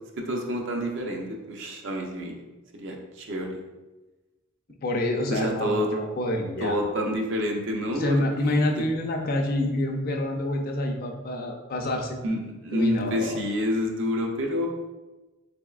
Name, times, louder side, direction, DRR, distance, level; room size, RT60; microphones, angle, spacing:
voice 1, 0.2-2.4 2.7-3.6 5.3-5.9 6.6-8.8 12.2-14.7, equal, 60° right, 1 dB, 0.5 m, -28 dB
voice 2, 4.8-6.8 7.9-12.2 12.7-13.4, left 1 dB, 45° left, 3 dB, 0.4 m, -27 dB
3.8 x 3.4 x 2.4 m, 1.1 s
head